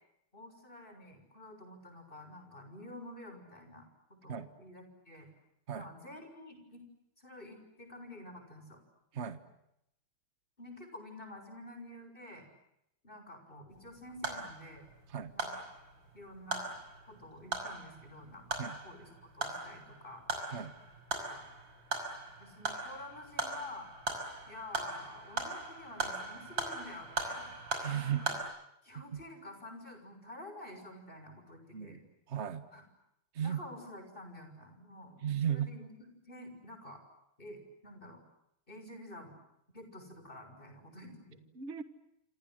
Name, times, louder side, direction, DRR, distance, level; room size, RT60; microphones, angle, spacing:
voice 1, 0.3-5.3 5.7-6.8 7.2-8.8 10.6-12.5 13.0-14.9 15.3-15.6 16.1-16.7 17.0-20.2 21.3-21.5 22.4-23.9 24.4-27.5 28.0-28.3 28.8-32.0 32.7-32.8 33.4-35.2 35.5-35.9 36.3-37.0 37.4-38.2 38.7-39.3 39.7-41.4, left 1 dB, 25° left, 6 dB, 6.8 m, -49 dB
sound 1, 13.7-28.4, right 3 dB, 65° right, 6.5 m, -40 dB
voice 2, 27.8-28.2 29.1-29.2 31.7-32.0 32.3-32.6 33.3-33.6 35.2-35.7 41.5-41.8, right 9 dB, 35° right, 10 dB, 1.7 m, -35 dB
28.0 x 27.0 x 7.9 m, 0.81 s
omnidirectional pair, 2.2 m